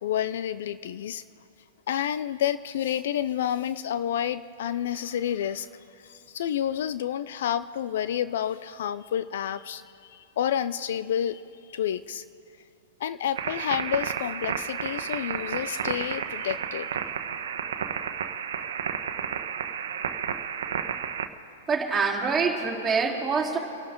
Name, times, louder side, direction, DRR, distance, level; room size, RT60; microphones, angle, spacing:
voice 1, 0.0-1.2 1.9-12.2 13.0-16.9, left 10 dB, 65° left, 14 dB, 0.5 m, -29 dB
sound 1, 13.4-21.3, right 8 dB, 70° right, 1.2 m, -32 dB
voice 2, 21.7-23.6, right 5 dB, 15° right, -5 dB, 3.8 m, -25 dB
29.5 x 12.0 x 3.8 m, 2.6 s
hypercardioid pair, 110°, 0 cm